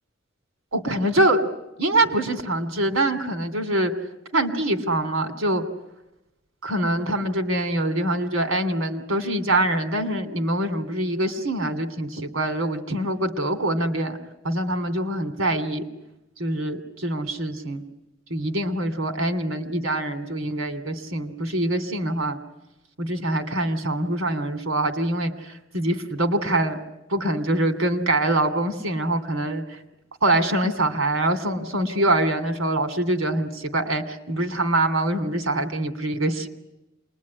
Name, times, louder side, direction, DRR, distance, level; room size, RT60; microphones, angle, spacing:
voice 1, 0.7-1.4 1.8-3.9 4.3-5.6 6.6-14.2 14.4-15.9 16.4-17.8 18.3-22.4 23.0-26.8 27.1-29.6 30.2-36.5, right 1 dB, 85° right, 8 dB, 3.1 m, -24 dB
28.0 x 21.5 x 9.8 m, 0.94 s
head